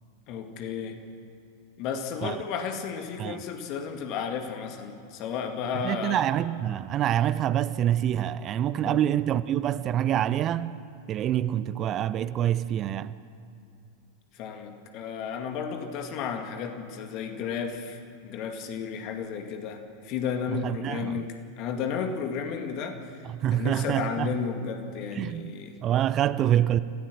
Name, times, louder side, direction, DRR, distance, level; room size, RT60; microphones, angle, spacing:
voice 1, 0.3-1.0 1.8-6.3 8.7-9.0 14.3-23.2 23.5-25.8, left 6 dB, 40° left, 2.1 m, -33 dB
voice 2, 5.8-10.7 11.1-13.1 20.5-21.2 23.3-24.3 25.1-25.5 25.8-26.8, right 11 dB, 30° right, 0.6 m, -26 dB
28.0 x 15.5 x 7.6 m
figure-of-eight pair, 90°, 0 cm